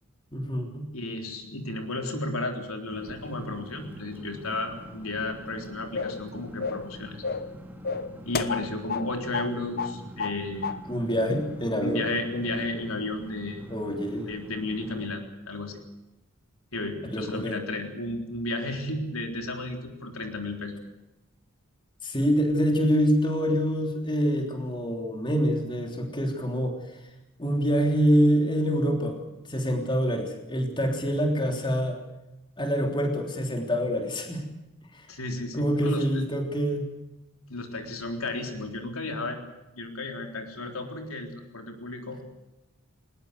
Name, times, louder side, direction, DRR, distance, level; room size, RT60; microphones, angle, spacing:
voice 1, 0.3-0.9 10.9-12.0 13.7-14.3 17.1-17.6 22.0-27.0 27.4-29.2 29.5-32.0 32.6-34.4 34.9-35.1 35.5-36.8, equal, 20° left, 3 dB, 3.3 m, -26 dB
voice 2, 0.9-7.2 8.2-10.7 11.8-13.6 14.3-15.8 16.7-20.8 35.1-36.2 37.5-39.5 39.8-42.2, left 2 dB, 80° left, 4 dB, 3.8 m, -33 dB
sound 1, 2.9-15.1, left 1 dB, 10° right, 3.0 m, -45 dB
sound 2, 5.9-6.2 6.6-6.9 7.2-7.5 7.8-9.1 9.3-9.5 9.8-10.4 10.6-10.8, left 5 dB, 45° left, 1.0 m, -31 dB
20.5 x 20.5 x 8.0 m, 0.97 s
head